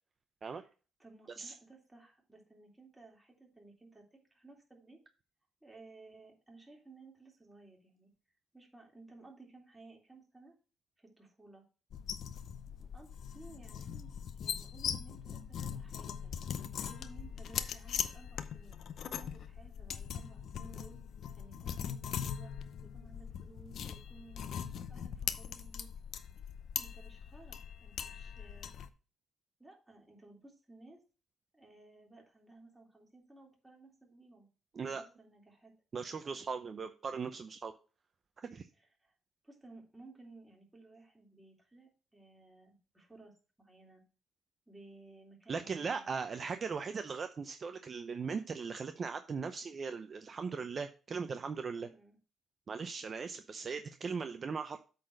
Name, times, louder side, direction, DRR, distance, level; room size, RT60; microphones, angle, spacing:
voice 1, 1.0-5.0 5.6-8.1 8.5-10.5 11.0-11.6 12.7-14.1 14.4-16.3 16.6-21.0 21.4-22.5 22.8-24.5 24.9-25.9 26.8-28.7 29.6-31.0 31.5-34.5 34.8-35.7 38.7-39.1 39.4-43.3 43.6-44.0 44.7-46.1 51.7-52.1, right 2 dB, 10° right, -1 dB, 3.2 m, -57 dB
sound 1, 11.9-28.9, left 8 dB, 65° left, 0.7 m, -41 dB
voice 2, 35.9-37.7 38.4-38.7 45.5-51.9 52.7-54.8, right 5 dB, 45° right, 8 dB, 0.6 m, -39 dB
8.4 x 4.1 x 6.4 m, 0.35 s
cardioid pair, 90°, 0 cm